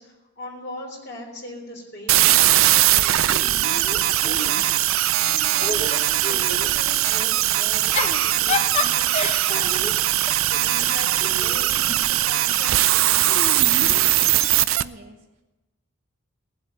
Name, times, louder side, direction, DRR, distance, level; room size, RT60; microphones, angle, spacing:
voice 1, 0.0-7.9 8.2-9.2 9.5-13.5, equal, 50° left, -5 dB, 3.6 m, -40 dB
sound 1, 2.1-14.8, right 14 dB, 80° right, 0.5 m, -20 dB
Giggle / Chuckle chortle, 3.3-4.9 5.3-6.7 7.7-12.2 13.2-14.6, left 3 dB, 35° left, 1.0 m, -31 dB
voice 2, 14.8-15.4, equal, 45° right, 0 dB, 1.0 m, -45 dB
18.5 x 7.8 x 8.9 m, 1.0 s
head